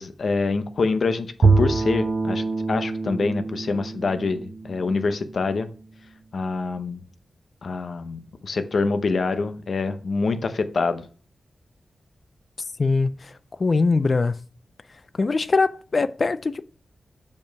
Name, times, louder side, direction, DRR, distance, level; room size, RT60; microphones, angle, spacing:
voice 1, 0.0-5.7 6.3-7.0 7.6-11.0, left 4 dB, 55° left, 0.8 m, -26 dB
Bowed string instrument, 1.4-5.7, right 3 dB, 45° right, 0.8 m, -24 dB
voice 2, 12.8-13.1 13.6-14.3 15.2-16.6, left 3 dB, 40° left, 0.4 m, -21 dB
7.1 x 5.3 x 4.6 m
wide cardioid pair, 140°, 0 cm